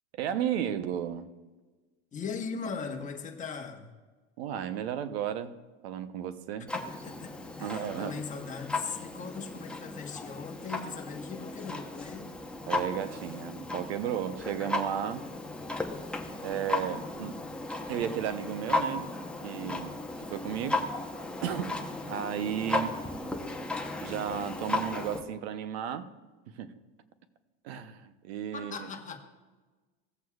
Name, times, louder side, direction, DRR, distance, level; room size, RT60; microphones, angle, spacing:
voice 1, 0.2-1.3 4.4-5.6 5.8-6.7 7.6-8.1 12.7-15.2 16.4-17.4 17.9-19.1 19.4-20.8 21.4-23.0 24.0-26.1 26.5-26.7 27.6-28.9, right 9 dB, 85° right, 0.8 m, -34 dB
voice 2, 2.1-3.9 6.7-12.3 28.5-29.2, left 5 dB, 25° left, 1.2 m, -39 dB
Clock, 6.7-25.2, left 2 dB, 5° left, 0.9 m, -35 dB
17.0 x 7.7 x 2.4 m
supercardioid pair, 125°, 31 cm